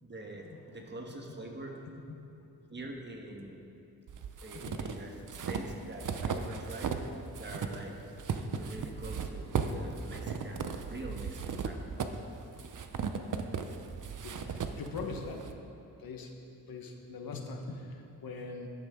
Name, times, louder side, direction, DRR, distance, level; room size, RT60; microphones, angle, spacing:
voice 1, 0.0-1.8 2.7-3.6 4.4-5.2 5.5-7.0 7.4-8.0 8.5-11.8, right 1 dB, 30° right, 1 dB, 1.4 m, -44 dB
sound 1, 4.1-7.1 7.4-15.5, right 5 dB, 60° right, 0.7 m, -36 dB
voice 2, 14.8-15.4 16.0-16.3 16.7-18.7, left 4 dB, 90° left, 3 dB, 1.3 m, -41 dB
14.0 x 11.0 x 3.7 m, 2.8 s
wide cardioid pair, 120°, 34 cm